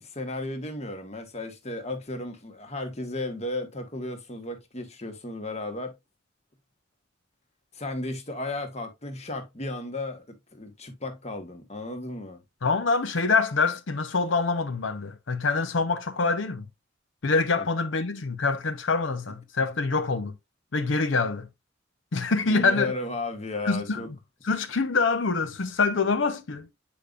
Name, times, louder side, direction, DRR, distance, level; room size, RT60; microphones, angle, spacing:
voice 1, 0.0-5.9 7.7-12.4 17.6-17.7 22.4-24.1, left 2 dB, 35° left, 1.4 m, -34 dB
voice 2, 12.6-16.7 17.2-20.3 20.7-21.5 22.1-22.9 23.6-24.0 24.4-26.7, left 4 dB, 85° left, 0.8 m, -25 dB
8.5 x 5.2 x 2.5 m
head